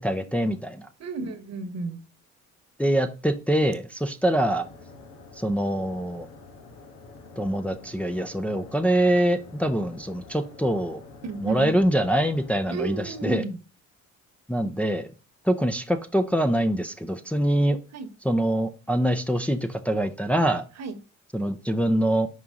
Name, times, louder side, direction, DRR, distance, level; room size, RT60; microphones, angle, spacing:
voice 1, 0.0-0.9 2.8-4.7 5.4-6.3 7.4-11.0 11.4-13.4 14.5-15.1 15.4-17.8 18.2-20.6 21.3-22.3, right 1 dB, 5° left, 5 dB, 0.6 m, -24 dB
voice 2, 1.0-2.0 11.2-11.7 12.7-13.6 17.9-18.1 20.8-21.0, right 4 dB, 60° right, 9 dB, 1.2 m, -32 dB
sound 1, 4.5-13.3, left 3 dB, 80° left, 1.5 m, -47 dB
5.6 x 4.6 x 3.7 m, 0.33 s
cardioid pair, 90°, 30 cm